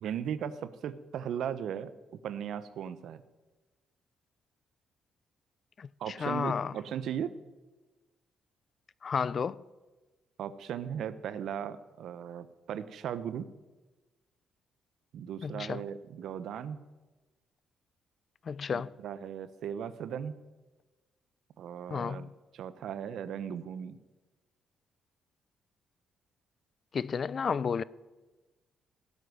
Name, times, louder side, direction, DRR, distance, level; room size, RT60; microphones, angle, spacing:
voice 1, 0.0-3.2 6.0-7.3 10.4-13.5 15.1-16.8 18.7-20.4 21.6-24.0, right 8 dB, 75° right, 1.0 m, -37 dB
voice 2, 5.8-6.7 9.0-9.6 15.4-15.8 18.5-18.9 21.9-22.3 26.9-27.8, left 6 dB, 45° left, 0.5 m, -32 dB
16.5 x 8.2 x 9.6 m
cardioid pair, 90°, 0 cm